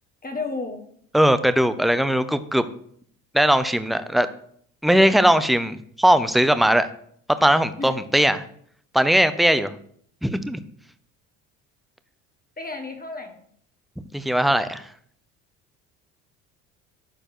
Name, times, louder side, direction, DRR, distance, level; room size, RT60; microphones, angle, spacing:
voice 1, 0.2-0.8 7.8-8.0 12.6-13.4, left 3 dB, 20° left, 4 dB, 1.6 m, -32 dB
voice 2, 1.1-2.6 3.3-4.3 4.8-6.9 7.4-8.4 8.9-9.7 10.2-10.6 14.1-14.9, equal, ahead, 12 dB, 0.6 m, -19 dB
12.0 x 4.4 x 4.5 m, 0.63 s
hypercardioid pair, 70°, 39 cm